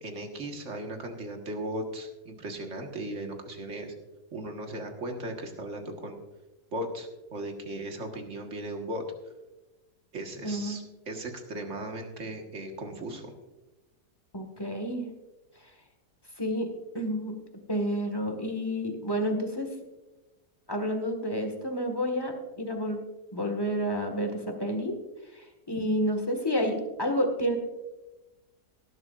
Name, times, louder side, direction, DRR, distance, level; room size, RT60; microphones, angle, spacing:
voice 1, 0.0-3.9 4.3-6.2 6.7-9.0 10.1-13.3, right 1 dB, 45° right, 3 dB, 1.9 m, -37 dB
voice 2, 10.4-10.8 14.3-15.1 16.4-16.7 16.9-17.3 17.7-19.7 20.7-23.0 23.3-25.0 25.3-27.6, equal, 15° left, 4 dB, 1.6 m, -30 dB
18.0 x 11.5 x 2.5 m, 1.1 s
omnidirectional pair, 1.7 m